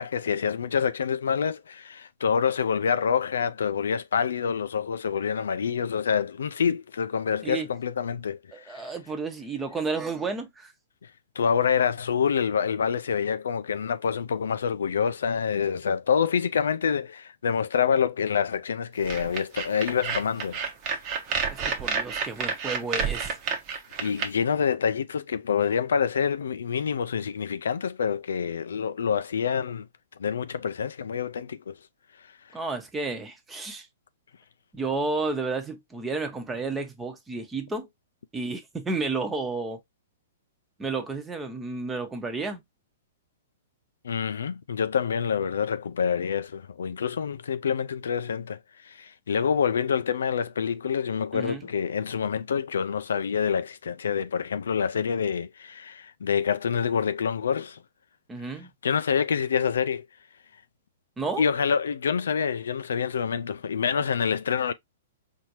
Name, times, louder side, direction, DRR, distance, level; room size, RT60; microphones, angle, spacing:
voice 1, 0.0-8.9 11.0-11.1 11.4-20.6 24.0-29.9 30.2-31.7 44.0-48.6 48.8-57.8 58.8-60.0 61.4-64.7, left 7 dB, 70° left, 0.3 m, -27 dB
voice 2, 8.5-10.7 21.5-23.3 32.5-33.9 34.7-37.9 38.3-39.8 40.8-42.6 51.3-51.6 58.3-58.7 61.2-61.4, right 3 dB, 15° right, 0.9 m, -31 dB
sound 1, 19.0-24.3, right 5 dB, 35° right, 1.0 m, -29 dB
4.2 x 2.7 x 2.9 m
figure-of-eight pair, 115°, 0 cm